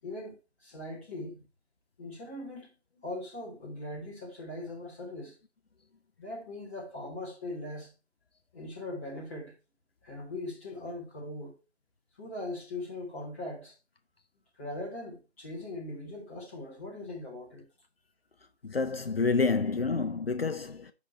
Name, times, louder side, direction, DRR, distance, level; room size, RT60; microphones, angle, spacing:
voice 1, 0.0-0.3 0.6-1.4 2.0-5.4 6.2-7.9 8.5-9.5 10.0-11.6 12.2-13.8 14.6-17.7, left 1 dB, 10° left, 1.5 m, -40 dB
voice 2, 18.6-20.9, left 4 dB, 65° left, 0.7 m, -28 dB
6.2 x 5.6 x 4.1 m
figure-of-eight pair, 160°, 32 cm